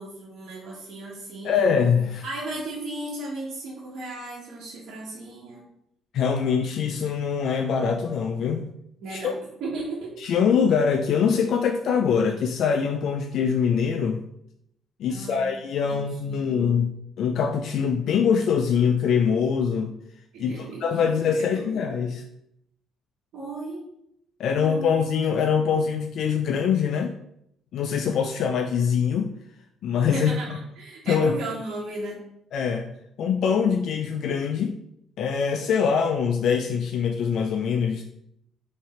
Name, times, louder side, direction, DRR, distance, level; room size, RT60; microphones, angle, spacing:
voice 1, 0.0-1.7 2.2-5.6 9.0-10.1 15.1-16.8 20.3-21.7 23.3-23.9 24.5-24.9 25.7-25.8 30.1-32.2, right 2 dB, 70° right, -6 dB, 1.3 m, -36 dB
voice 2, 1.4-2.2 6.1-8.6 9.1-9.3 10.2-14.2 15.0-16.9 17.2-19.9 20.4-22.2 24.4-27.1 27.7-29.3 29.8-30.6 31.1-31.3 32.5-32.9 33.2-34.8 35.2-38.0, left 6 dB, 70° left, 4 dB, 0.4 m, -23 dB
3.6 x 3.3 x 4.4 m, 0.75 s
cardioid pair, 95°, 0 cm